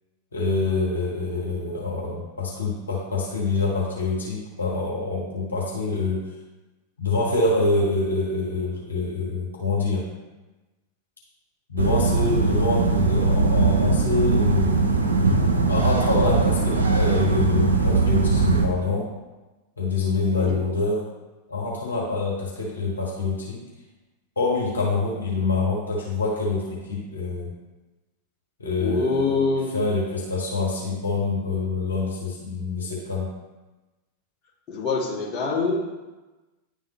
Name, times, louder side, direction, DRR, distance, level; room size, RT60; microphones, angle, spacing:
voice 1, 0.3-6.3 7.0-10.1 11.7-14.9 15.7-19.1 19.8-21.1 21.5-23.6 24.4-27.5 28.6-29.4 29.7-33.3, left 3 dB, 75° left, -4 dB, 1.4 m, -26 dB
sound 1, 11.8-18.7, right 3 dB, 75° right, 0.7 m, -20 dB
voice 2, 28.8-29.7 34.7-35.8, left 4 dB, 35° left, -5 dB, 1.9 m, -25 dB
10.0 x 3.7 x 3.2 m, 1.1 s
figure-of-eight pair, 90°, 0 cm